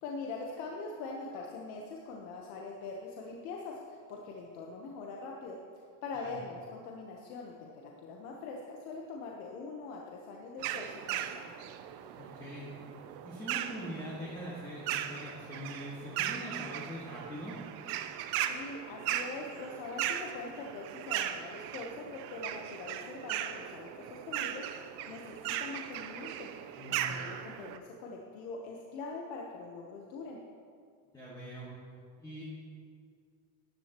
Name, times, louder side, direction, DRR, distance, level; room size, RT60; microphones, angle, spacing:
voice 1, 0.0-11.7 18.4-30.4, left 3 dB, 70° left, -1 dB, 1.2 m, -43 dB
sound 1, 10.6-27.8, right 11 dB, 60° right, 0.7 m, -38 dB
voice 2, 12.2-12.7 13.2-17.6 26.8-27.1 31.1-31.7 32.2-32.4, equal, 10° left, -8 dB, 1.7 m, -43 dB
13.5 x 10.5 x 3.0 m, 2.3 s
cardioid pair, 165°, 42 cm